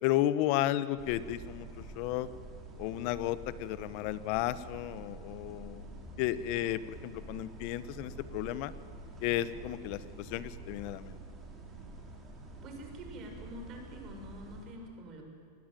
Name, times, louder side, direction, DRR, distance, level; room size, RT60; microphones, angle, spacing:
voice 1, 0.0-1.7 2.0-2.3 2.8-5.8 6.2-8.7 9.2-11.2, left 13 dB, 50° left, 15 dB, 1.1 m, -33 dB
sound 1, 1.0-14.7, right 2 dB, 15° right, 4.8 m, -48 dB
voice 2, 12.6-15.2, right 1 dB, 35° right, 3 dB, 6.2 m, -46 dB
25.0 x 20.0 x 9.1 m, 2.5 s
supercardioid pair, 140°, 0 cm